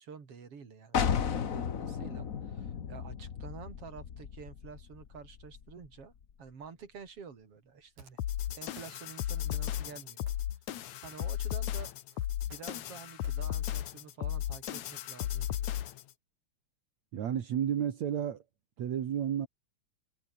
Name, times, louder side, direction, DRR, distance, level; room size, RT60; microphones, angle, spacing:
voice 1, 0.0-6.1 6.4-8.2 8.5-10.3 11.0-11.9 12.5-15.7, right 6 dB, 50° right, 4.3 m, -49 dB
sound 1, 0.9-6.5, left 7 dB, 55° left, 0.9 m, -35 dB
sound 2, 8.0-8.5 8.8-9.3 9.5-10.0 10.3-11.3 11.6-13.4, right 5 dB, 85° right, 6.1 m, -56 dB
sound 3, 8.2-16.1, left 12 dB, 75° left, 2.7 m, -35 dB
voice 2, 17.1-18.4 18.8-19.5, right 9 dB, 70° right, 3.2 m, -31 dB
omnidirectional pair, 3.3 m